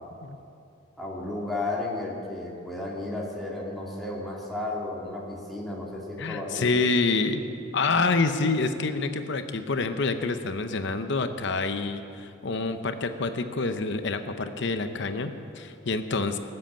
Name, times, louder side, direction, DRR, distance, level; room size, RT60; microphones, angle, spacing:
voice 1, 1.0-6.6, left 2 dB, ahead, -5 dB, 2.6 m, -33 dB
voice 2, 6.2-7.4 7.7-16.4, left 3 dB, 60° left, 8 dB, 0.7 m, -27 dB
19.0 x 7.7 x 8.7 m, 2.6 s
head